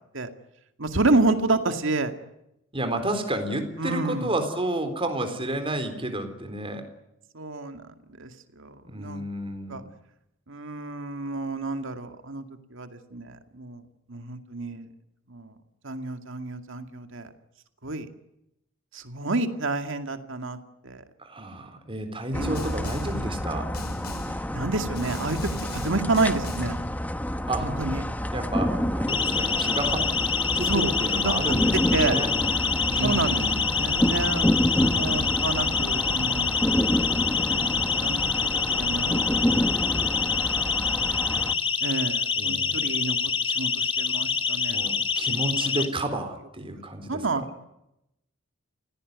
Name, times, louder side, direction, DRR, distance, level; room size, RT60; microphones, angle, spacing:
voice 1, 0.8-2.1 3.8-4.3 7.3-7.8 8.2-8.3 8.6-9.2 9.7-9.8 10.5-12.4 12.7-13.8 14.1-14.9 15.3-15.5 15.8-17.3 17.8-18.1 18.9-20.6 20.8-21.0 22.3-22.7 24.5-26.8 27.6-28.0 30.7-30.9 31.2-32.2 33.0-33.4 33.8-36.6 37.5-39.2 41.8-45.9 47.1-47.4, right 3 dB, 65° right, 7 dB, 2.3 m, -29 dB
voice 2, 2.7-6.9 8.8-9.9 21.2-23.7 27.5-27.7 28.3-30.1 30.5-32.3 32.9-33.6 42.4-42.9 44.7-47.5, right 1 dB, 25° right, 7 dB, 3.9 m, -31 dB
sound 1, 22.3-41.5, equal, 10° left, 1.2 m, -28 dB
Snare drum, 22.5-23.2 23.7-24.4 24.9-26.8, left 2 dB, 50° left, 6.3 m, -41 dB
Siren, 29.1-45.8, left 6 dB, 25° left, 2.0 m, -26 dB
29.0 x 17.0 x 9.5 m, 0.86 s
head